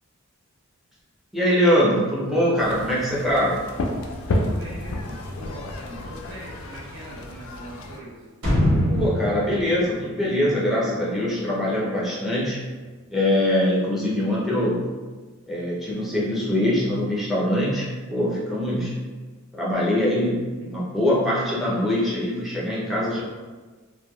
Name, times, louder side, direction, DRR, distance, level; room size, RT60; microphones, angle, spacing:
voice 1, 1.3-3.6 8.9-12.6 13.1-14.9 15.5-19.0 19.5-23.2, left 1 dB, ahead, -7 dB, 0.5 m, -23 dB
sound 1, 2.6-8.0, left 1 dB, 65° left, 0.3 m, -31 dB
voice 2, 4.3-8.2, equal, 55° right, -8 dB, 0.8 m, -41 dB
sound 2, 8.4-11.2 11.6-11.7, equal, 80° right, 1.0 m, -24 dB
3.1 x 2.2 x 2.2 m, 1.4 s
head